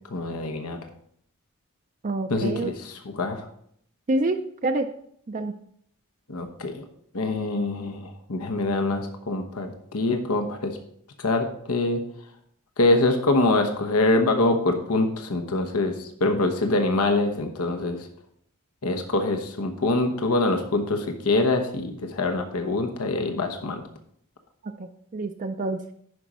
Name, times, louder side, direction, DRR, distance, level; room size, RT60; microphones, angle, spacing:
voice 1, 0.1-0.8 2.3-3.5 6.3-6.8 7.1-10.8 11.2-12.0 12.8-18.1 18.8-23.8, left 2 dB, 85° left, 5 dB, 1.0 m, -24 dB
voice 2, 2.0-2.7 4.1-4.9 5.3-5.5 24.8-25.8, right 2 dB, 35° right, 5 dB, 0.4 m, -27 dB
11.0 x 5.1 x 4.2 m, 0.68 s
head